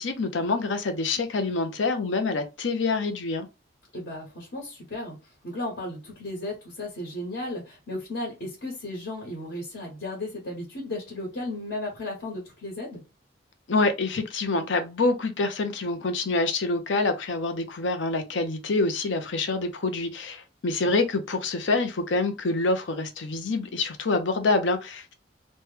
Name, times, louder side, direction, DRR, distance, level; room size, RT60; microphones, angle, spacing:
voice 1, 0.0-3.5 13.7-25.1, left 3 dB, 85° left, 0.6 m, -26 dB
voice 2, 3.9-13.0, left 1 dB, 65° left, 1.3 m, -35 dB
3.0 x 2.2 x 3.2 m
head